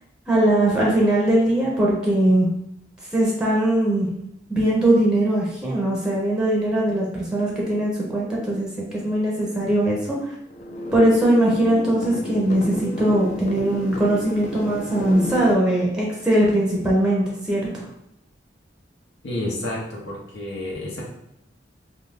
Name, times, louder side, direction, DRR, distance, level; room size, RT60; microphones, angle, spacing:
voice 1, 0.3-2.5 3.1-4.1 4.5-10.2 10.9-17.7, right 1 dB, 5° right, -4 dB, 0.6 m, -20 dB
sound 1, 10.5-15.5, left 1 dB, 40° left, 0.3 m, -32 dB
voice 2, 19.2-21.0, left 1 dB, 90° left, -4 dB, 0.8 m, -30 dB
2.5 x 2.3 x 3.3 m, 0.79 s
head